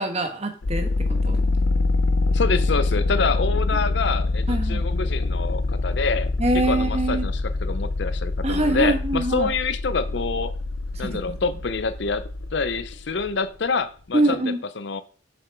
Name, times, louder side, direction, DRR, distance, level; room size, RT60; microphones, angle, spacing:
voice 1, 0.0-1.4 4.5-4.8 6.4-7.3 8.4-9.5 10.9-11.3 14.1-14.6, right 1 dB, 35° right, 1.3 m, -24 dB
sound 1, 0.6-13.3, left 2 dB, 90° left, 0.8 m, -25 dB
voice 2, 2.3-6.3 6.5-10.5 11.0-12.2 12.5-14.4 14.8-15.0, left 4 dB, 60° left, 0.6 m, -26 dB
7.0 x 6.9 x 4.6 m
head